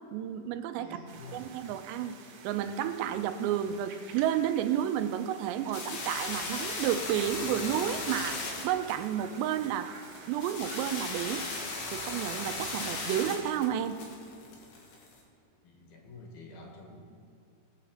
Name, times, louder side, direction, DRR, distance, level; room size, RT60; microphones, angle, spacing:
voice 1, 0.1-1.0 1.3-2.2 2.4-10.0 10.3-11.5 11.9-14.0, right 10 dB, 85° right, 9 dB, 2.8 m, -31 dB
voice 2, 0.8-1.6 15.6-17.0, left 3 dB, 65° left, 1 dB, 3.1 m, -48 dB
sound 1, 1.1-13.5, right 5 dB, 65° right, 2.3 m, -50 dB
sound 2, 5.7-15.1, left 3 dB, 85° left, 4.1 m, -37 dB
19.5 x 7.0 x 5.0 m, 2.5 s
omnidirectional pair, 5.0 m